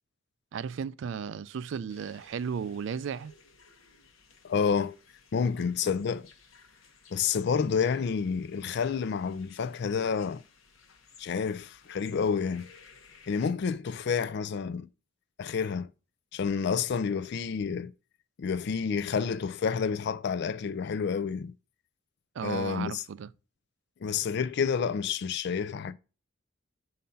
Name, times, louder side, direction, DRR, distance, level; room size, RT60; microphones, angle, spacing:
voice 1, 0.5-3.3 22.4-23.3, right 7 dB, 60° right, 0.3 m, -35 dB
sound 1, 1.9-13.5, left 5 dB, 75° left, 1.0 m, -57 dB
voice 2, 4.4-5.0 5.3-6.3 7.1-10.4 11.2-12.7 13.3-14.9 15.4-15.9 16.3-17.9 18.4-21.5 22.4-23.0 24.0-25.9, left 6 dB, 55° left, 0.4 m, -29 dB
5.5 x 3.8 x 5.4 m
head